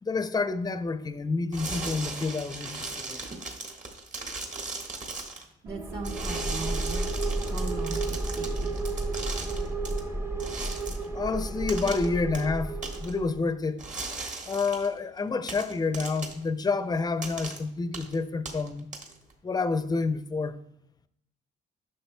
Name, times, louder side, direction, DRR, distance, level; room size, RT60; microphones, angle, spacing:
voice 1, 0.0-3.3 11.1-12.7 13.0-13.9 14.5-18.9 19.4-20.6, left 4 dB, 20° left, 0.5 m, -29 dB
sound 1, 1.5-5.4 6.0-10.0 10.4-11.0 11.7-12.1 12.3-12.4 12.8-13.1 13.8-14.9 15.5-16.4 17.2-17.6 17.9-18.1 18.4-19.3, right 3 dB, 40° right, 1.5 m, -37 dB
voice 2, 5.6-7.1 7.5-8.8, right 3 dB, 55° right, 1.6 m, -38 dB
sound 2, 5.7-13.4, right 2 dB, 15° right, 0.8 m, -32 dB
10.0 x 6.4 x 2.2 m
cardioid pair, 90°, 20 cm